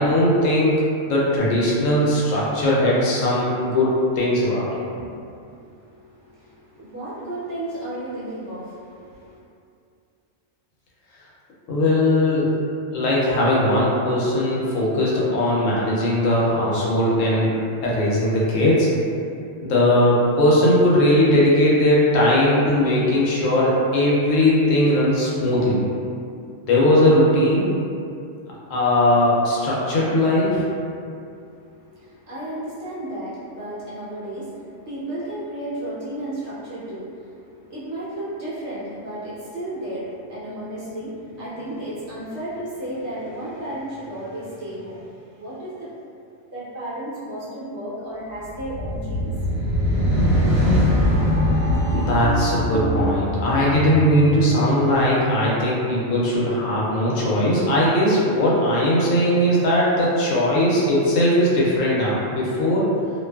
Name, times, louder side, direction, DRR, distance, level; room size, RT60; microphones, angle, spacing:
voice 1, 0.0-3.9 4.2-4.7 11.7-12.5 12.9-17.5 17.8-18.9 19.6-25.8 26.6-27.7 28.7-30.6 51.9-62.9, left 1 dB, 75° left, -6 dB, 1.0 m, -19 dB
voice 2, 5.0-9.4 30.9-45.9 46.5-49.3, right 1 dB, 60° right, -10 dB, 1.1 m, -34 dB
sound 1, 48.5-55.0, equal, 85° right, 1.1 m, -22 dB
2.6 x 2.2 x 2.2 m, 2.5 s
omnidirectional pair, 1.3 m